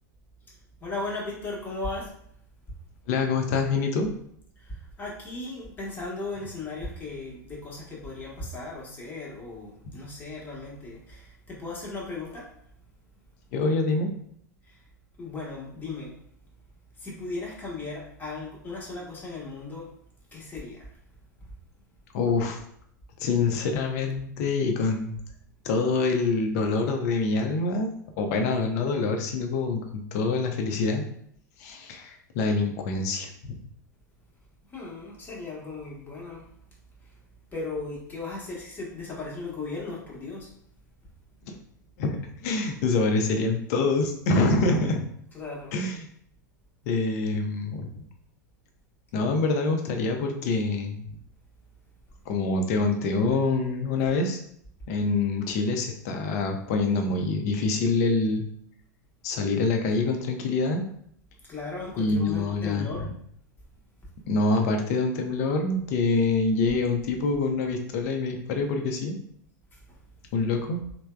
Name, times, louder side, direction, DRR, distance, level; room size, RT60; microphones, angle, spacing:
voice 1, 0.8-2.2 4.6-12.5 14.7-14.8 15.2-16.1 17.0-19.9 20.3-20.9 34.7-36.5 37.5-40.5 45.3-45.7 61.5-63.1 69.9-70.0, left 3 dB, 20° left, -4 dB, 1.0 m, -36 dB
voice 2, 3.1-4.1 13.5-14.1 22.1-22.6 23.2-25.2 25.6-31.0 31.6-33.5 41.5-41.6 42.0-45.0 45.7-46.0 46.9-47.9 49.1-51.0 52.3-54.4 54.9-58.4 59.2-60.8 62.0-62.9 64.3-69.2 70.3-70.8, left 3 dB, 55° left, 4 dB, 0.5 m, -26 dB
3.3 x 2.0 x 2.2 m, 0.67 s
hypercardioid pair, 95°, 10 cm